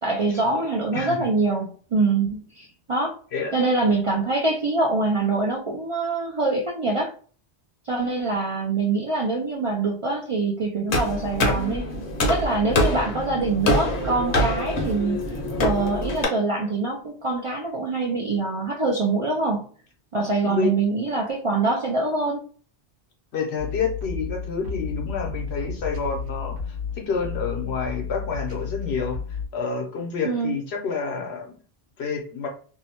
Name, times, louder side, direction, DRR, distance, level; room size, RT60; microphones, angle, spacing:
voice 1, 0.0-3.1 3.5-7.1 7.9-11.9 12.3-19.7 20.1-22.5 30.2-30.6, right 3 dB, 50° right, -3 dB, 0.3 m, -24 dB
voice 2, 0.9-1.3 3.3-3.5 12.7-12.9 20.4-20.7 23.3-29.2 29.5-31.6 32.0-32.5, left 5 dB, 80° left, 2 dB, 1.0 m, -29 dB
sound 1, 10.9-16.2, left 1 dB, 60° left, 0.8 m, -25 dB
sound 2, 23.6-29.5, left 6 dB, 85° right, 1.0 m, -32 dB
2.7 x 2.1 x 2.8 m, 0.41 s
omnidirectional pair, 1.1 m